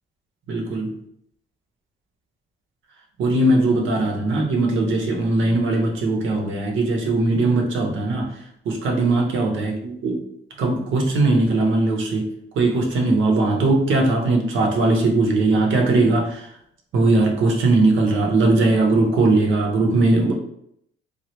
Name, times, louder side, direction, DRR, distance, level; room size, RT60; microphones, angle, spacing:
voice 1, 0.5-1.0 3.2-8.3 8.7-10.2 10.6-16.5 16.9-20.3, right 2 dB, 75° right, 1 dB, 0.8 m, -19 dB
3.1 x 2.3 x 2.9 m, 0.71 s
cardioid pair, 90°, 20 cm